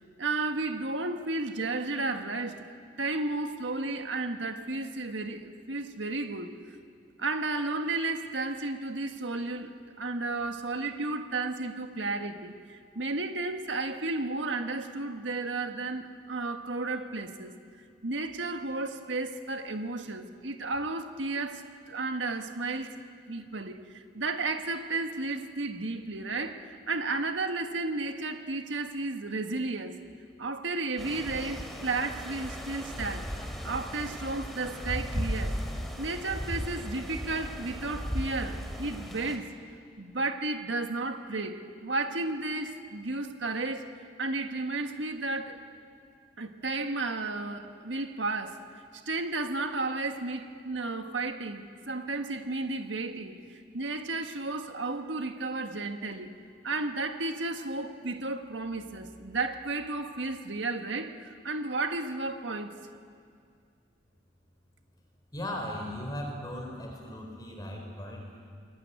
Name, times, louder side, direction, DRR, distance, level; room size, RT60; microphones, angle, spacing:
voice 1, 0.2-6.6 7.2-23.0 23.3-30.0 30.4-33.3 33.6-35.6 36.0-39.5 40.0-43.9 44.2-45.6 46.4-48.7 48.9-56.3 56.6-62.8, right 3 dB, 85° right, 6 dB, 1.7 m, -33 dB
sound 1, 31.0-39.4, equal, ahead, 2.7 m, -36 dB
voice 2, 65.3-68.4, left 1 dB, 20° left, 1 dB, 4.3 m, -37 dB
27.5 x 21.5 x 9.5 m, 2.2 s
head